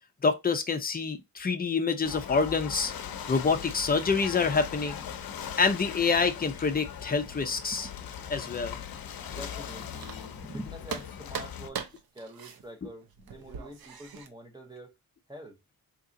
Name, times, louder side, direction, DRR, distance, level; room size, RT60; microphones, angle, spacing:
voice 1, 0.2-2.9 3.3-5.0 5.5-7.9 8.3-8.8, left 5 dB, 25° left, 0.5 m, -27 dB
Ocean / Boat Water vehicle, 2.0-11.7, left 8 dB, 75° left, 0.6 m, -40 dB
voice 2, 9.2-14.9 15.3-15.6, equal, 10° right, 0.8 m, -45 dB
sound 1, 9.2-10.5 10.9-14.3, right 6 dB, 80° right, 0.8 m, -41 dB
3.7 x 2.9 x 2.6 m
wide cardioid pair, 160°, 36 cm